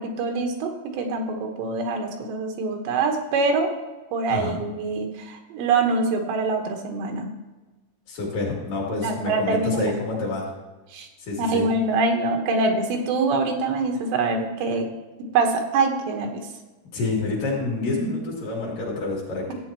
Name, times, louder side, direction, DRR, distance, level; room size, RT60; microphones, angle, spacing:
voice 1, 0.0-3.7 4.1-7.3 9.0-10.2 10.9-11.1 11.4-14.9 15.3-16.4, right 3 dB, 85° right, 3 dB, 3.4 m, -24 dB
voice 2, 4.3-4.6 8.1-10.5 11.2-11.7 16.9-19.5, left 3 dB, 55° left, -4 dB, 3.6 m, -28 dB
14.0 x 8.9 x 2.9 m, 1.2 s
omnidirectional pair, 5.0 m